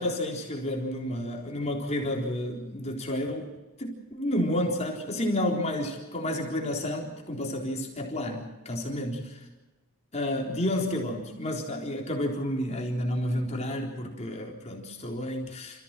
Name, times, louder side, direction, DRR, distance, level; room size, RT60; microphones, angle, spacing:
voice 1, 0.0-3.5 3.8-9.4 10.1-15.8, left 1 dB, 30° left, 0 dB, 3.9 m, -30 dB
29.0 x 15.5 x 7.6 m, 1.1 s
head